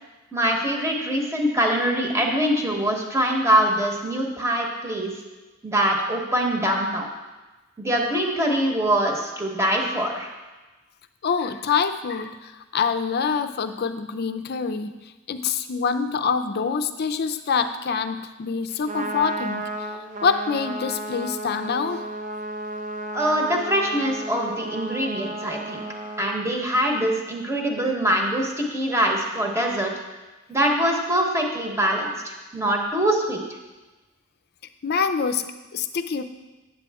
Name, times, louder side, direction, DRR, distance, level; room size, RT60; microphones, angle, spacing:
voice 1, 0.3-5.1 5.6-7.1 7.8-10.3 23.1-25.8 26.2-29.9 30.5-33.4, right 1 dB, 15° right, 0 dB, 1.1 m, -23 dB
voice 2, 11.2-15.0 15.3-19.7 20.2-22.0 34.8-36.2, left 5 dB, 50° left, 9 dB, 0.5 m, -25 dB
Trumpet, 18.7-26.3, right 1 dB, 40° right, 0.6 m, -33 dB
8.3 x 8.1 x 3.5 m, 1.2 s
head